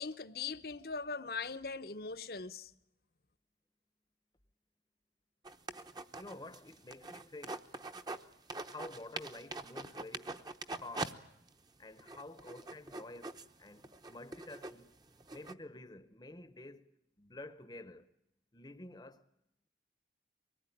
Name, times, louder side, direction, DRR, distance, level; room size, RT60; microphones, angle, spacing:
voice 1, 0.0-2.7, left 4 dB, 55° left, 0.9 m, -40 dB
sound 1, 5.4-8.2 8.5-11.1 11.5-11.6 12.0-15.5, right 2 dB, 20° right, 0.9 m, -43 dB
voice 2, 6.1-7.7 8.7-10.5 10.8-11.2 11.8-14.9 15.3-16.9 17.2-18.1 18.5-19.3, left 2 dB, 25° left, 0.9 m, -50 dB
24.5 x 19.0 x 10.0 m
head